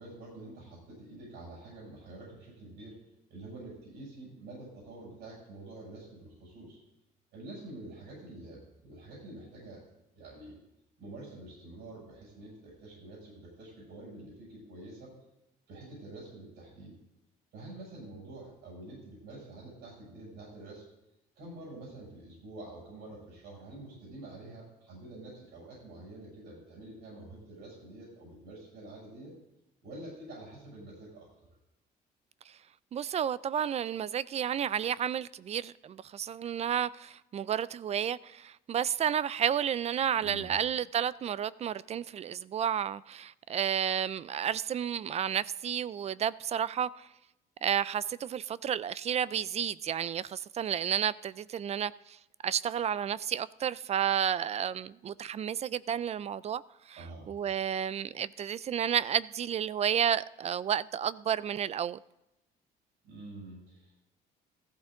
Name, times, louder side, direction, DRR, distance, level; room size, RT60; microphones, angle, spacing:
voice 1, 0.0-3.0 3.3-6.8 7.3-9.8 10.1-10.6 11.0-15.1 15.7-16.9 17.5-20.8 21.3-29.3 29.8-31.3 40.2-40.6 57.0-57.3 63.0-64.0, right 2 dB, 80° right, 6.9 m, -47 dB
voice 2, 32.9-47.1 47.6-52.2 52.4-62.0, right 9 dB, 40° right, 0.4 m, -31 dB
15.0 x 14.5 x 3.8 m
cardioid pair, 110°, 17 cm